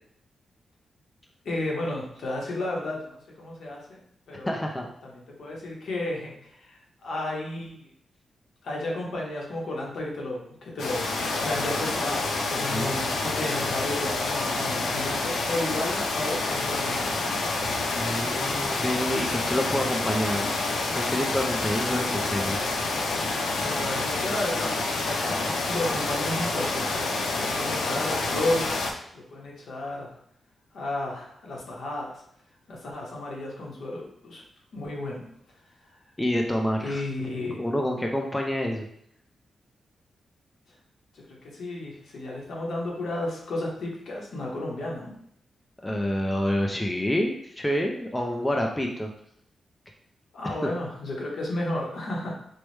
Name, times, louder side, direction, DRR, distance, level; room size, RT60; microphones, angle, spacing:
voice 1, 1.4-4.0 4.3-4.6 5.0-7.9 8.6-11.1 11.4-17.0 23.2-28.7 29.1-30.1 30.7-32.2 32.7-34.4 34.7-35.3 36.8-37.7 41.1-45.1 50.3-52.3, left 1 dB, 70° left, -2 dB, 0.9 m, -33 dB
voice 2, 4.5-4.9 12.7-13.0 17.9-20.6 20.9-22.8 36.2-37.0 37.6-38.9 45.8-49.1, equal, 10° left, 1 dB, 0.3 m, -28 dB
sound 1, 10.8-28.9, left 3 dB, 90° left, 0.5 m, -28 dB
4.6 x 2.1 x 3.1 m, 0.70 s
wide cardioid pair, 150°, 0 cm